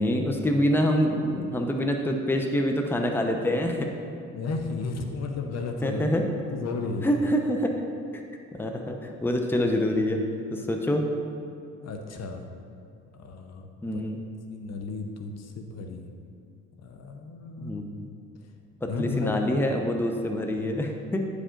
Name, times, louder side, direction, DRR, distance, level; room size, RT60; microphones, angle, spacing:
voice 1, 0.0-3.9 5.8-6.3 7.0-7.7 8.1-8.2 8.5-10.2 10.5-11.1 13.8-14.2 17.6-18.1 18.8-21.3, equal, 5° left, 3 dB, 0.7 m, -26 dB
voice 2, 4.3-6.2 6.5-7.1 11.8-12.5 13.1-14.0 14.5-16.1 16.8-17.7 18.9-19.5, left 4 dB, 60° left, 4 dB, 0.8 m, -33 dB
9.5 x 5.0 x 3.8 m, 2.6 s
cardioid pair, 90°, 30 cm